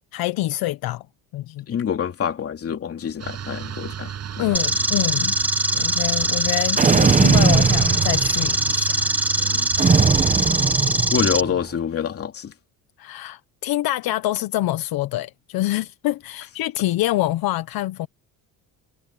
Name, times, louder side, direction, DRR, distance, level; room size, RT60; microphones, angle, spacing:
voice 1, 0.1-1.1 1.3-1.8 4.4-5.4 5.7-9.1 9.4-9.7 10.8-11.0 13.0-18.1, left 15 dB, 70° left, 1.1 m, -26 dB
voice 2, 1.7-4.5 9.6-9.7 11.1-12.5, left 8 dB, 35° left, 3.1 m, -26 dB
sound 1, 3.2-9.9, right 8 dB, 40° right, 6.8 m, -33 dB
sound 2, 4.5-11.4, right 1 dB, 5° right, 1.4 m, -22 dB
sound 3, 6.8-8.6 9.8-11.6, right 5 dB, 20° right, 1.0 m, -19 dB
cardioid pair, 135°, 38 cm